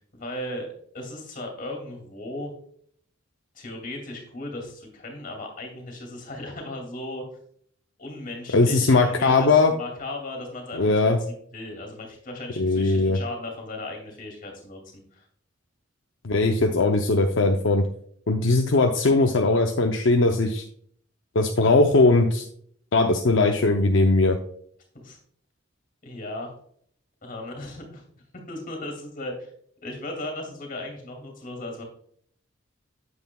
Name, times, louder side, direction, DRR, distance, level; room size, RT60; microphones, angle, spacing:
voice 1, 0.1-0.7 0.9-2.5 3.5-7.2 8.0-15.2 24.9-25.2 26.0-26.5 27.2-28.0 28.5-29.5 29.8-31.8, left 1 dB, 40° left, 2 dB, 2.5 m, -36 dB
voice 2, 8.5-9.7 10.7-11.2 12.6-13.2 16.2-17.9 18.3-20.6 21.3-22.4 22.9-24.4, left 3 dB, 65° left, 3 dB, 0.6 m, -20 dB
9.0 x 8.0 x 2.3 m, 0.62 s
head